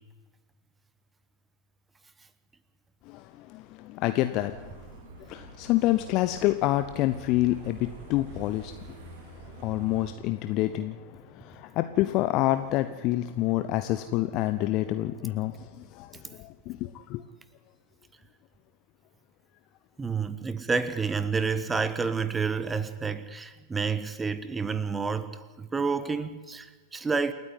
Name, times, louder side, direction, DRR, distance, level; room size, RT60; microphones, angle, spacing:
voice 1, 3.5-4.7 5.3-8.7 9.6-11.0 11.4-15.5 15.9-17.2, left 15 dB, 40° left, 11 dB, 0.8 m, -27 dB
sound 1, 4.3-10.2, right 4 dB, 50° right, 2.8 m, -46 dB
voice 2, 20.0-27.3, right 5 dB, 15° right, 14 dB, 1.2 m, -29 dB
28.0 x 9.4 x 9.8 m, 1.3 s
figure-of-eight pair, 90°, 0 cm